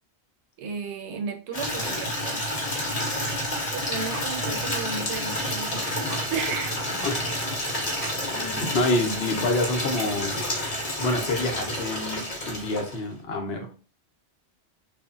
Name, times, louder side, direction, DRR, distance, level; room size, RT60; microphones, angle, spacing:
voice 1, 0.6-2.6 3.1-6.8, right 5 dB, 80° right, 4 dB, 0.8 m, -35 dB
Water tap faucet / Liquid, 1.5-13.1, equal, 35° left, 0.9 m, -29 dB
sound 1, 4.1-4.4 5.1-5.3 6.1-6.3 7.0-7.3 8.0-8.2, right 2 dB, 50° right, 0.6 m, -38 dB
voice 2, 7.0-7.4 8.3-10.3 10.7-13.8, left 2 dB, 70° left, 3 dB, 0.9 m, -28 dB
3.2 x 2.1 x 2.3 m, 0.37 s
omnidirectional pair, 1.1 m